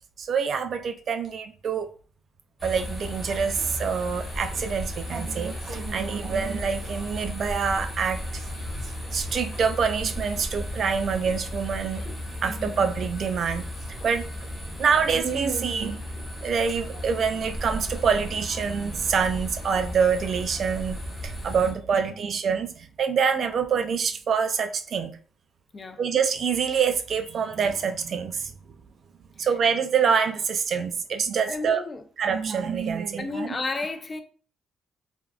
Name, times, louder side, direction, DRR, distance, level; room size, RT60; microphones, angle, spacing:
voice 1, 0.2-1.9 2.6-8.4 9.1-12.1 12.4-13.7 14.0-14.3 14.8-16.0 16.4-25.1 26.0-28.5 29.4-31.8 32.2-33.5, right 6 dB, 55° right, 0.4 m, -26 dB
sound 1, 2.6-21.7, left 1 dB, 10° right, 1.3 m, -35 dB
voice 2, 12.4-12.8 14.6-14.8 21.9-22.3 25.7-26.0 29.4-29.5 31.5-32.0 33.2-34.2, left 3 dB, 30° left, 0.4 m, -33 dB
3.4 x 2.3 x 2.3 m
cardioid pair, 90°, 0 cm